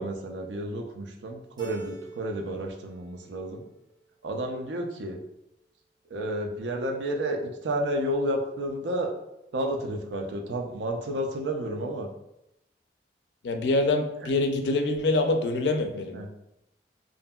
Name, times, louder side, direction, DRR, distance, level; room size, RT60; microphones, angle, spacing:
voice 1, 0.0-3.6 4.2-5.2 6.1-9.1 9.5-12.1 14.2-14.3 16.1-16.3, right 1 dB, 80° right, 3 dB, 0.4 m, -31 dB
Keyboard (musical), 1.6-2.7 3.0-3.7, right 5 dB, 25° right, 0.5 m, -44 dB
voice 2, 13.4-16.2, left 2 dB, 75° left, 6 dB, 0.4 m, -25 dB
2.7 x 2.5 x 2.2 m, 0.85 s
head